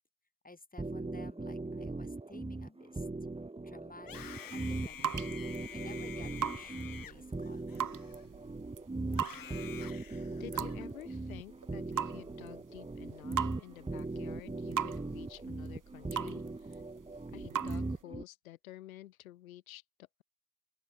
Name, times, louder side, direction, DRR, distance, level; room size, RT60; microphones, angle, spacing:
voice 1, 0.4-3.1 3.6-4.2 4.5-5.2 5.7-7.6, left 3 dB, 20° left, 7.4 m, -54 dB
sound 1, 0.8-18.2, right 2 dB, 15° right, 1.7 m, -40 dB
Screaming, 4.0-8.5 9.1-10.8, left 10 dB, 55° left, 2.8 m, -49 dB
sound 2, 4.5-18.0, right 8 dB, 50° right, 4.1 m, -41 dB
voice 2, 10.4-16.8 17.3-20.2, left 14 dB, 85° left, 4.1 m, -51 dB
open air
hypercardioid pair, 45°, 40 cm